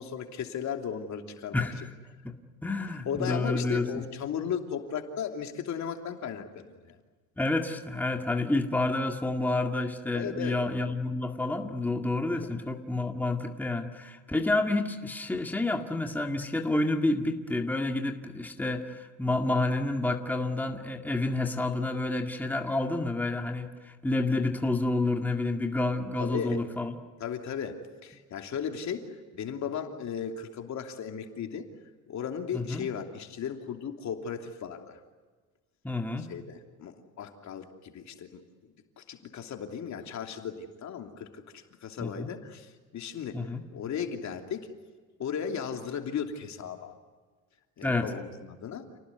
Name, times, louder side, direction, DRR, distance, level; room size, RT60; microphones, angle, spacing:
voice 1, 0.0-1.7 2.8-7.0 10.1-10.6 12.3-12.5 26.2-26.6 27.2-31.7 32.1-35.0 36.2-44.7 45.2-46.9 47.8-48.9, left 7 dB, 55° left, 4 dB, 3.0 m, -36 dB
voice 2, 1.5-1.9 2.2-2.3 2.6-3.9 7.4-26.9 32.5-32.9 35.8-36.3 42.0-42.3 43.3-43.6 47.8-48.1, left 2 dB, 5° left, 3 dB, 2.1 m, -29 dB
29.5 x 19.0 x 9.6 m, 1.4 s
cardioid pair, 100°, 34 cm